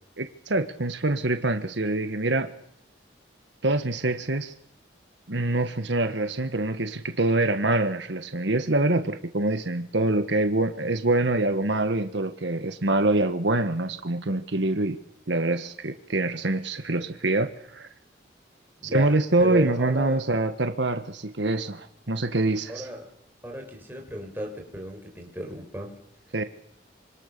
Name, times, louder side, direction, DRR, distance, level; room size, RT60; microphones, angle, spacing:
voice 1, 0.2-2.5 3.6-4.5 5.3-15.0 15.3-17.9 18.9-22.9 26.3-26.4, right 2 dB, 70° right, 8 dB, 1.5 m, -25 dB
voice 2, 18.8-20.2 22.7-23.1 23.4-26.0, right 1 dB, 10° right, 1 dB, 5.7 m, -35 dB
26.0 x 26.0 x 6.9 m, 0.74 s
head